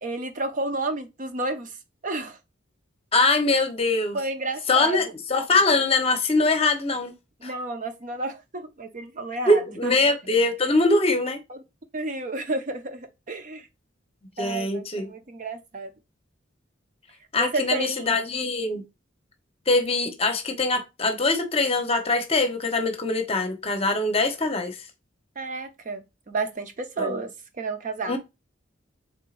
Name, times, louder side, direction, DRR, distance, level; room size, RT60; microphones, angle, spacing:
voice 1, 0.0-1.7 2.0-2.4 4.1-5.0 7.4-9.9 11.5-11.6 11.9-13.7 14.4-15.9 17.4-18.2 25.4-27.3 27.6-28.2, right 2 dB, 40° right, 0.6 m, -31 dB
voice 2, 3.1-4.2 4.7-5.0 5.3-7.1 7.4-7.5 9.5-11.4 14.4-15.1 17.3-18.8 19.7-24.8 27.0-27.1 28.1-28.2, left 3 dB, 30° left, 0.9 m, -23 dB
4.5 x 3.6 x 2.5 m
head